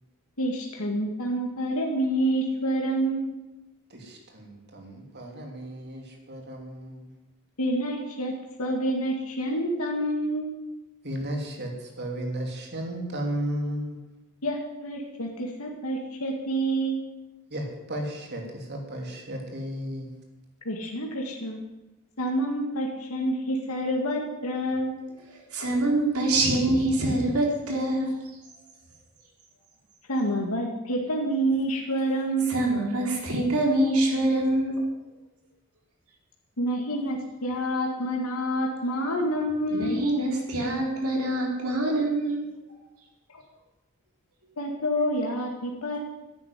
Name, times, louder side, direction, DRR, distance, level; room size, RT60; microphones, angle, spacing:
voice 1, 0.4-3.4 7.6-8.3 8.6-10.6 14.4-17.0 20.7-21.6 22.2-25.0 30.1-32.6 36.6-40.0 44.6-46.0, right 1 dB, 80° left, 0 dB, 2.0 m, -28 dB
voice 2, 3.9-7.1 11.0-14.0 17.5-20.2, right 1 dB, 50° right, 2 dB, 3.1 m, -34 dB
voice 3, 25.3-28.4 32.5-34.9 39.7-42.5, right 1 dB, 85° right, 0 dB, 4.1 m, -25 dB
11.5 x 9.8 x 9.4 m, 1.0 s
head